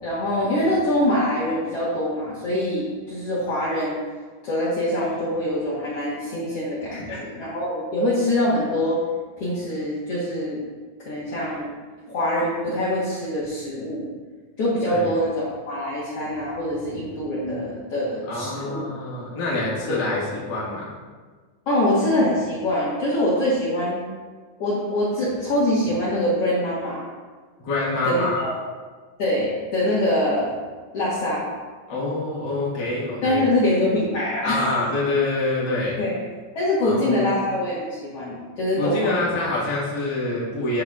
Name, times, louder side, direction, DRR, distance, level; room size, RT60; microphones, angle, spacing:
voice 1, 0.0-4.0 4.4-9.0 9.4-10.6 11.0-11.7 12.1-14.1 14.6-18.9 19.9-20.0 21.7-24.0 24.6-27.0 28.0-28.6 29.2-30.5 30.9-31.5 33.2-34.7 36.0-36.1 36.6-39.3, left 1 dB, 55° left, -9 dB, 2.1 m, -24 dB
voice 2, 6.9-7.2 14.9-15.1 18.3-21.0 27.6-28.5 31.9-33.4 34.4-36.0 36.8-37.2 38.8-40.8, left 2 dB, 40° left, -6 dB, 2.1 m, -26 dB
9.5 x 7.3 x 2.5 m, 1.4 s
omnidirectional pair, 3.7 m